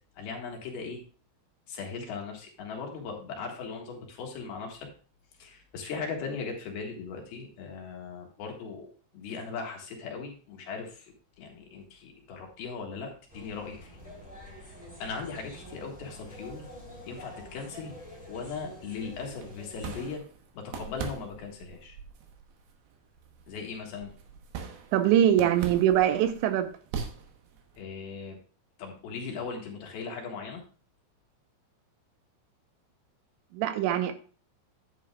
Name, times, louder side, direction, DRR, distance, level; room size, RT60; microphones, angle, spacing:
voice 1, 0.2-1.0 1.7-4.9 5.4-8.9 9.1-14.0 14.5-16.7 17.1-17.9 18.3-20.2 20.5-22.0 23.5-24.1 27.8-28.4 28.8-30.6, left 5 dB, 65° left, 1 dB, 3.1 m, -38 dB
sound 1, 13.3-20.2, equal, ahead, 2.8 m, -47 dB
sound 2, 19.4-27.8, right 6 dB, 70° right, 2.8 m, -42 dB
voice 2, 24.9-26.7 33.5-34.1, right 11 dB, 85° right, 9 dB, 3.0 m, -23 dB
10.0 x 9.4 x 2.4 m, 0.39 s
omnidirectional pair, 5.3 m